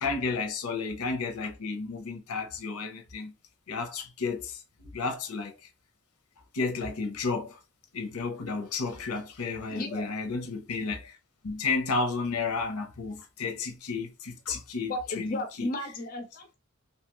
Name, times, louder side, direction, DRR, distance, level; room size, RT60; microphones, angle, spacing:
voice 1, 0.0-3.3 3.7-5.5 6.5-7.6 7.9-11.1 11.4-15.7, left 4 dB, 85° left, 0.7 m, -32 dB
voice 2, 9.7-10.1 14.9-16.5, left 1 dB, 40° left, 0.4 m, -34 dB
2.8 x 2.2 x 3.0 m
head